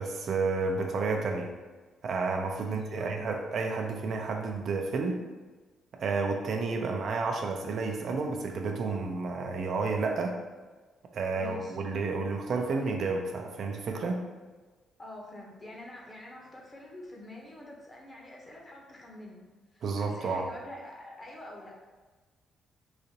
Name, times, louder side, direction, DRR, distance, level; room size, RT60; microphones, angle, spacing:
voice 1, 0.0-1.5 2.0-5.2 6.0-10.4 11.1-14.2 19.8-20.5, right 4 dB, 60° right, 3 dB, 0.4 m, -31 dB
voice 2, 2.6-3.2 11.4-11.8 15.0-19.4 19.7-21.7, left 1 dB, 30° left, -1 dB, 0.9 m, -45 dB
4.0 x 2.5 x 2.8 m, 1.3 s
cardioid pair, 90°, 0 cm